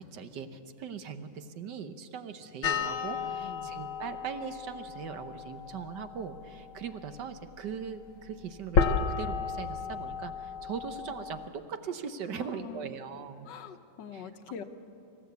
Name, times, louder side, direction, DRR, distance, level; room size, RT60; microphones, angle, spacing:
voice 1, 0.0-13.5 14.1-14.3, right 6 dB, 65° right, 9 dB, 1.5 m, -40 dB
sound 1, 2.6-11.5, left 5 dB, 85° left, 1.8 m, -33 dB
voice 2, 3.4-3.7 12.3-13.0 13.4-14.6, left 7 dB, 65° left, 8 dB, 1.6 m, -44 dB
26.0 x 15.0 x 8.2 m, 2.7 s
omnidirectional pair, 2.2 m